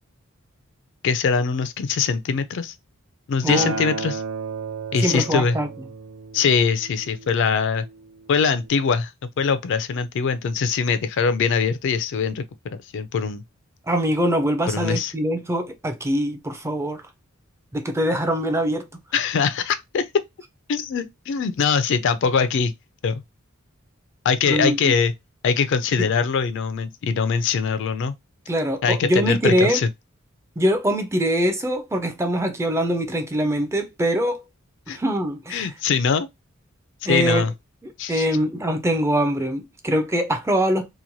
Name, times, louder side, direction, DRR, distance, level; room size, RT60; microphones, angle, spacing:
voice 1, 1.0-2.7 3.3-4.2 4.9-5.6 6.3-7.9 8.3-9.1 9.4-13.4 14.7-15.1 19.1-20.1 20.7-22.7 23.0-23.2 24.2-25.1 25.4-28.1 28.8-29.9 34.9-35.0 35.5-36.3 37.1-37.5 38.0-38.3, left 5 dB, 60° left, 0.3 m, -22 dB
voice 2, 3.4-3.8 5.0-5.7 13.9-17.0 17.7-18.9 24.5-24.9 28.5-29.8 30.6-34.4 34.9-35.7 37.1-37.5 38.1-40.9, equal, 15° right, 0.4 m, -23 dB
Acoustic guitar, 3.5-7.8 8.6-8.7, right 4 dB, 80° right, 0.5 m, -33 dB
3.0 x 2.1 x 2.6 m
head